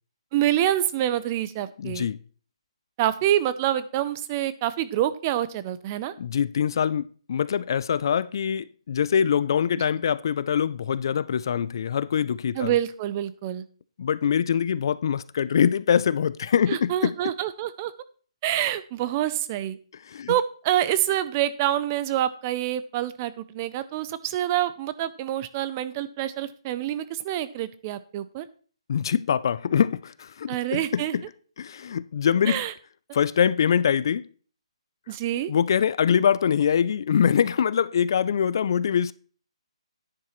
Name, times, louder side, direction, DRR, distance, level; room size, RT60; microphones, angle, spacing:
voice 1, 0.3-2.1 3.0-6.1 12.5-13.6 16.7-17.9 18.4-19.8 20.3-28.5 30.5-31.1 32.5-32.7 35.1-35.5, right 12 dB, 20° right, 0.5 m, -26 dB
voice 2, 1.8-2.2 6.2-12.7 14.0-17.1 20.1-20.3 28.9-31.2 31.6-32.6 33.1-34.2 35.5-39.1, left 8 dB, 45° left, 0.4 m, -24 dB
10.0 x 9.7 x 3.1 m
hypercardioid pair, 165°, 3 cm